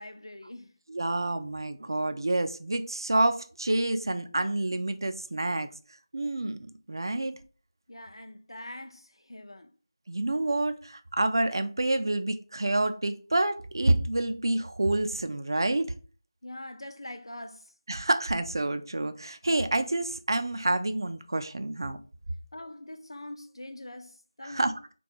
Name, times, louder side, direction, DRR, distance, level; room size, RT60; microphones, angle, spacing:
voice 1, 0.0-0.7 7.9-9.7 16.4-17.7 22.5-24.8, left 1 dB, 90° left, 0.4 m, -43 dB
voice 2, 0.9-5.7 6.1-6.6 6.9-7.4 10.1-15.9 17.9-22.0 24.4-24.9, right 2 dB, 60° right, 0.3 m, -28 dB
2.4 x 2.2 x 2.8 m
figure-of-eight pair, 170°, 3 cm